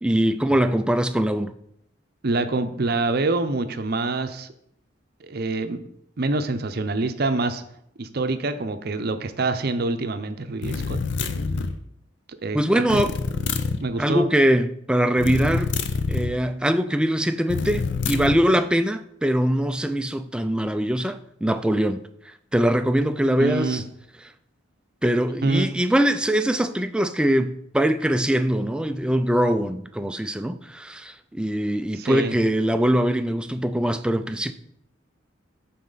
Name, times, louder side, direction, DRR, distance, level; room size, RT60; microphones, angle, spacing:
voice 1, 0.0-1.5 12.5-13.1 14.0-15.7 16.1-23.8 25.0-34.5, equal, 5° right, 0.3 m, -22 dB
voice 2, 2.2-4.5 5.2-5.8 6.2-7.6 8.0-11.0 12.4-12.6 13.8-14.3 23.4-23.8 25.4-25.7 32.0-32.3, right 3 dB, 50° right, 0.6 m, -25 dB
sound 1, 10.6-11.8 12.9-13.8 15.2-16.3 17.5-18.4, left 4 dB, 60° left, 0.6 m, -26 dB
11.5 x 4.2 x 3.9 m
head